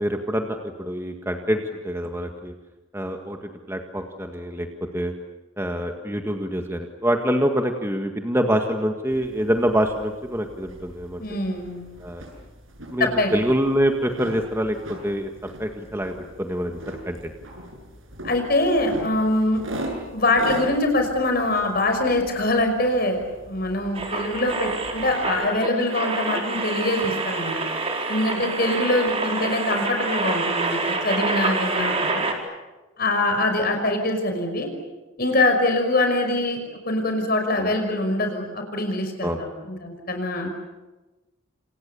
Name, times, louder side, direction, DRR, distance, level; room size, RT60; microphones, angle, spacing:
voice 1, 0.0-2.5 2.9-4.7 4.9-5.1 5.6-11.4 12.0-12.2 12.9-15.3 15.6-17.3 37.6-37.7 39.2-39.4 40.4-40.5, equal, 10° right, 4 dB, 1.8 m, -25 dB
sound 1, 9.1-25.6, right 1 dB, 70° right, 7.7 m, -40 dB
voice 2, 11.2-11.9 13.0-13.3 18.2-19.6 20.1-23.2 23.5-27.6 28.1-32.3 33.0-34.7 35.2-36.6 36.9-40.5, left 2 dB, 45° left, 4 dB, 5.6 m, -23 dB
sound 2, 24.0-32.3, right 3 dB, 30° right, 4.4 m, -27 dB
29.5 x 28.0 x 7.0 m, 1.1 s
head